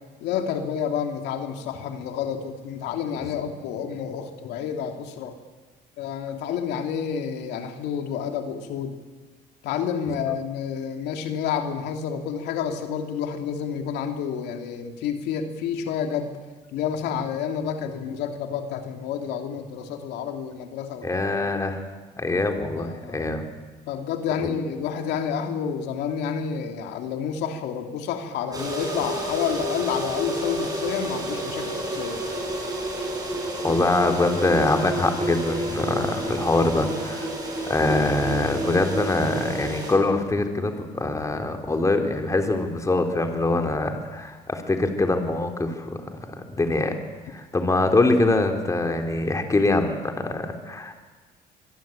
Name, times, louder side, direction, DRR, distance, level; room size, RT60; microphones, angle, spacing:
voice 1, 0.2-5.3 6.0-9.0 9.6-16.3 16.7-21.2 22.8-23.3 23.9-32.2, left 7 dB, 85° left, 5 dB, 2.7 m, -29 dB
voice 2, 21.0-21.8 22.2-23.5 24.4-24.5 33.6-37.3 37.7-46.0 46.5-47.0 47.3-50.9, left 2 dB, 20° left, 4 dB, 3.4 m, -23 dB
sound 1, 28.5-39.9, right 1 dB, 20° right, 7.6 m, -30 dB
25.0 x 22.0 x 8.9 m, 1.3 s
cardioid pair, 110°, 17 cm